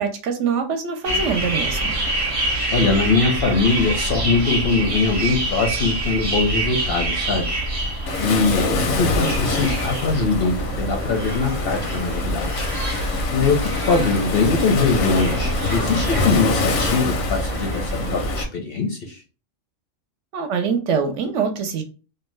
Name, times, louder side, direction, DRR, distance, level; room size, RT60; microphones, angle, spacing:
voice 1, 0.0-1.9 20.3-21.8, right 6 dB, 70° right, 5 dB, 0.9 m, -24 dB
sound 1, 1.0-18.5, right 1 dB, 45° right, 0.4 m, -26 dB
voice 2, 2.7-7.6 8.2-12.7 13.3-19.2, left 4 dB, 60° left, 3 dB, 0.6 m, -22 dB
Waves surf, 8.1-18.4, left 3 dB, 85° left, 1.0 m, -26 dB
2.7 x 2.2 x 3.1 m, 0.34 s
omnidirectional pair, 1.4 m